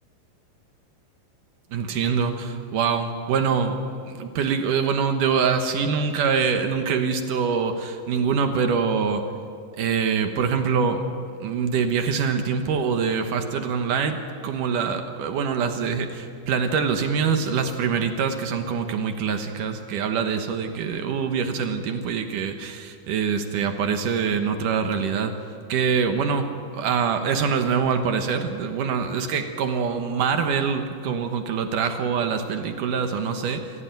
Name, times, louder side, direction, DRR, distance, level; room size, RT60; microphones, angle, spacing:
voice 1, 1.7-9.3 9.7-11.1 11.4-25.3 25.7-33.7, right 6 dB, 65° right, 6 dB, 2.2 m, -24 dB
26.5 x 16.0 x 9.1 m, 2.3 s
omnidirectional pair, 5.1 m